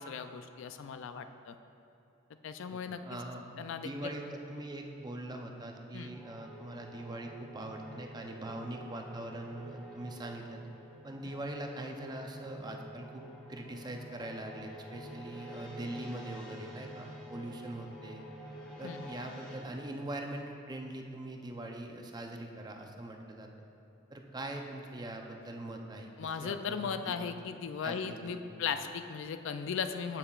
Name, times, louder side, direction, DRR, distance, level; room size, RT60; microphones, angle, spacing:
voice 1, 0.0-1.6 2.4-3.2 3.6-4.1 5.9-6.1 18.8-19.1 26.2-30.2, left 6 dB, 65° left, 9 dB, 0.3 m, -37 dB
voice 2, 3.0-3.4 3.8-10.6 11.0-13.2 13.5-18.3 18.8-23.5 24.1-27.4 27.8-28.6, right 1 dB, 20° right, 2 dB, 0.6 m, -42 dB
sound 1, 6.1-19.6, equal, 5° left, 1.1 m, -49 dB
14.5 x 5.6 x 2.4 m, 2.8 s
head